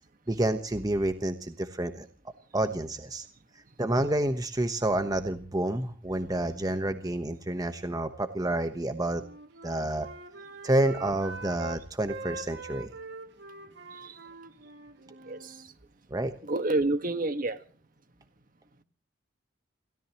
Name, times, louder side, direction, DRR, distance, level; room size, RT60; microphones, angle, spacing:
voice 1, 0.3-2.1 2.5-3.2 3.8-9.2 9.6-10.1 10.6-12.9 16.1-16.3, right 1 dB, 20° right, 1.1 m, -29 dB
Wind instrument woodwind instrument, 9.0-11.8 12.1-15.7, right 3 dB, 60° right, 2.3 m, -43 dB
voice 2, 16.5-17.6, right 2 dB, 45° right, 1.5 m, -28 dB
29.0 x 16.5 x 3.0 m
head